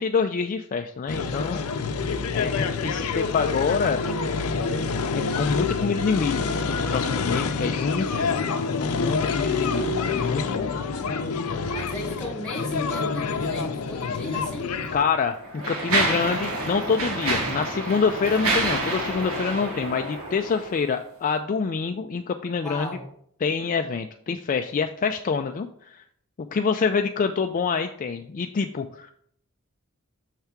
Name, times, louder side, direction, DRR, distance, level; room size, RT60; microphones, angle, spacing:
voice 1, 0.0-1.6 2.3-4.0 4.4-8.5 8.8-10.7 14.9-22.9 23.4-26.0 26.5-29.1, left 5 dB, 35° left, 6 dB, 0.3 m, -26 dB
sound 1, 1.1-15.0, left 4 dB, 85° left, 0.6 m, -27 dB
voice 2, 11.7-14.8 22.6-23.1, left 1 dB, 5° left, -3 dB, 2.0 m, -36 dB
Mechanisms, 14.2-14.4 15.1-20.9, right 2 dB, 65° right, 1.6 m, -28 dB
6.5 x 3.5 x 5.8 m, 0.66 s
head